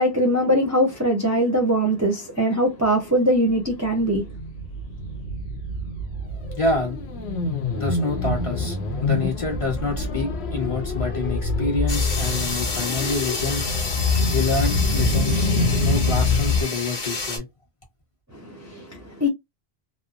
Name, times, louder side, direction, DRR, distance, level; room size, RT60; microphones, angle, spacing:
voice 1, 0.0-4.2 18.4-19.3, equal, 20° right, 0.6 m, -21 dB
sound 1, 3.5-16.6, left 3 dB, 80° left, 0.9 m, -25 dB
voice 2, 6.5-7.0 7.7-13.7 14.3-15.5 15.8-17.4, left 3 dB, 30° left, 1.1 m, -27 dB
sound 2, 11.9-17.4, left 3 dB, 65° left, 1.1 m, -30 dB
3.0 x 2.0 x 2.4 m
omnidirectional pair, 1.1 m